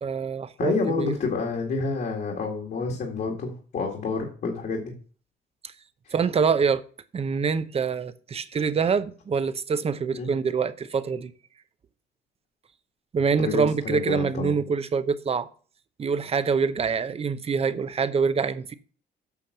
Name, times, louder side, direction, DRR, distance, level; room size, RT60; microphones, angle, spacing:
voice 1, 0.0-1.1 5.6-5.7 6.1-6.8 7.1-11.3 13.1-15.5 16.0-18.7, right 5 dB, 35° right, 0.8 m, -25 dB
voice 2, 0.6-4.9 6.1-6.2 10.1-10.3 13.4-14.6, left 4 dB, 55° left, 2.0 m, -29 dB
8.4 x 5.8 x 6.6 m
cardioid pair, 120°, 18 cm